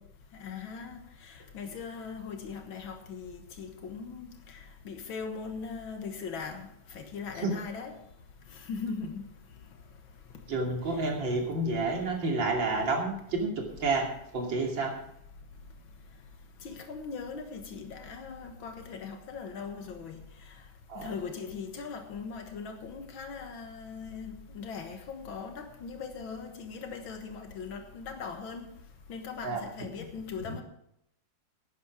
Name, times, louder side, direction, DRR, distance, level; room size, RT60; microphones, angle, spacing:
voice 1, 0.3-4.6 4.9-8.0 8.5-9.2 10.9-11.0 16.6-20.2 21.0-28.6 29.1-30.6, left 5 dB, 85° left, 2.2 m, -40 dB
voice 2, 10.5-14.1 14.3-14.9 20.9-21.1 29.4-29.6, right 3 dB, 75° right, 3.4 m, -29 dB
12.0 x 9.5 x 6.1 m
omnidirectional pair, 2.1 m